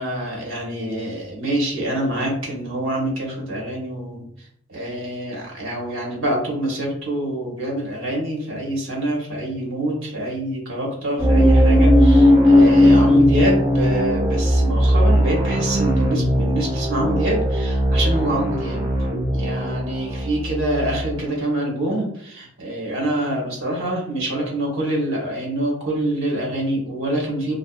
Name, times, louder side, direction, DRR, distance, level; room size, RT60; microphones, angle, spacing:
voice 1, 0.0-27.6, right 1 dB, 75° right, -2 dB, 1.0 m, -26 dB
sound 1, 11.2-21.1, equal, 15° right, 0.4 m, -17 dB
2.6 x 2.2 x 2.3 m, 0.68 s
head